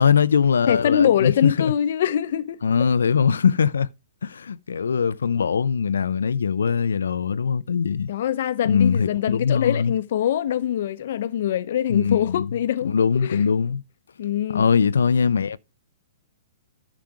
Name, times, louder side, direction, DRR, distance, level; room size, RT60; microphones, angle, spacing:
voice 1, 0.0-1.7 2.6-3.9 4.2-8.1 8.7-9.9 11.9-12.5 12.8-13.8 14.5-15.6, left 6 dB, 85° left, 0.6 m, -21 dB
voice 2, 0.7-2.6 8.1-12.9 13.2-13.5 14.2-14.7, left 10 dB, 60° left, 0.9 m, -23 dB
10.5 x 6.0 x 4.9 m
hypercardioid pair, 135°, 0 cm